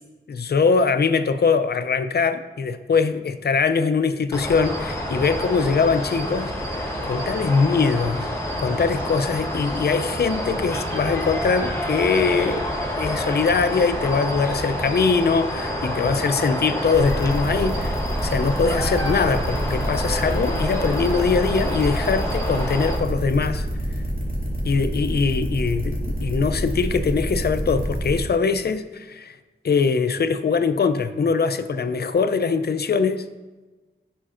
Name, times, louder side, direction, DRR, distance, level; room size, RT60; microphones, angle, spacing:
voice 1, 0.3-8.3 8.6-12.6 13.0-18.0 18.2-23.7 24.6-29.4 29.6-33.2, left 5 dB, 50° left, 11 dB, 0.4 m, -22 dB
sound 1, 4.3-23.0, equal, 15° left, 1.2 m, -28 dB
sound 2, 16.9-28.2, right 1 dB, 40° right, 2.3 m, -28 dB
9.8 x 5.8 x 2.5 m, 1.2 s
wide cardioid pair, 80°, 21 cm